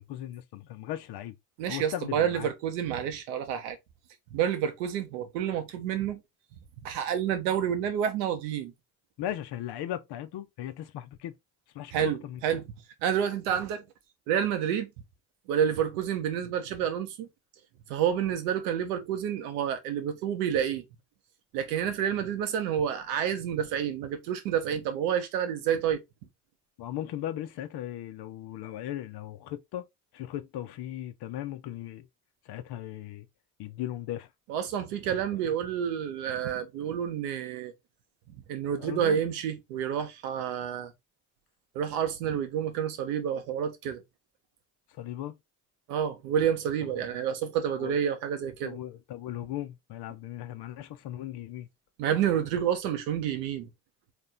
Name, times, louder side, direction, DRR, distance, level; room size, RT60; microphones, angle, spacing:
voice 1, 0.0-1.3 1.7-2.5 9.2-11.3 11.7-12.4 26.8-29.9 30.1-32.1 32.5-33.3 33.6-34.3 38.8-39.2 44.9-45.3 46.8-47.1 47.8-48.0 48.6-51.7, left 12 dB, 55° left, 0.9 m, -37 dB
voice 2, 1.6-3.8 4.3-6.2 6.8-8.7 11.9-12.6 13.0-13.8 14.3-14.9 15.5-17.3 17.9-20.8 21.5-26.0 34.5-37.7 38.5-40.9 41.7-44.0 45.9-48.8 52.0-53.7, right 9 dB, 70° right, 1.1 m, -29 dB
4.3 x 3.3 x 3.6 m
figure-of-eight pair, 45°, 48 cm